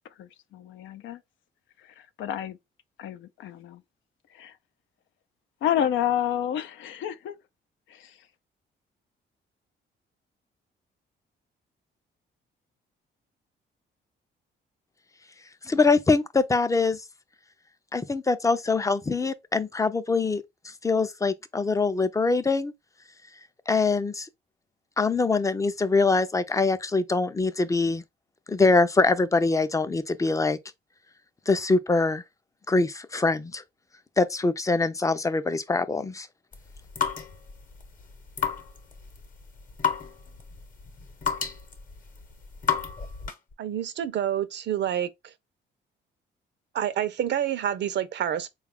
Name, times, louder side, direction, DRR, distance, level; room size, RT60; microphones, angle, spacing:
voice 1, 0.0-1.2 1.8-2.6 3.0-3.8 4.3-4.6 5.6-7.4 7.9-8.3, left 10 dB, 80° left, 0.5 m, -30 dB
voice 2, 15.7-17.0 17.9-20.4 20.8-22.7 23.7-24.3 25.0-28.0 28.5-30.6 31.5-32.2 32.7-33.6 34.2-36.3, left 3 dB, 15° left, 0.4 m, -23 dB
sound 1, 36.5-43.5, left 7 dB, 40° left, 0.9 m, -32 dB
voice 3, 43.6-45.3 46.7-48.5, right 10 dB, 60° right, 0.6 m, -28 dB
3.9 x 2.4 x 3.5 m
cardioid pair, 90°, 20 cm